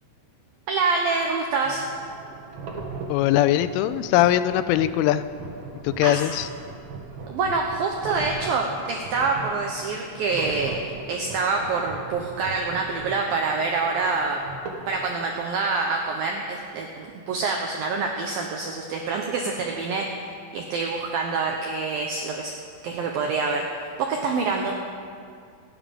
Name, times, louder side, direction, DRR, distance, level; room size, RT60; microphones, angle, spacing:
voice 1, 0.7-1.8 6.0-6.2 7.3-10.8 11.1-14.4 14.9-20.1 20.5-22.5 22.8-24.8, right 4 dB, 90° right, 1 dB, 2.0 m, -26 dB
sound 1, 1.6-15.1, right 4 dB, 60° right, 2.0 m, -38 dB
voice 2, 3.1-5.2 5.8-6.5, left 13 dB, 85° left, 13 dB, 3.0 m, -21 dB
27.5 x 9.4 x 5.3 m, 2.3 s
omnidirectional pair, 5.7 m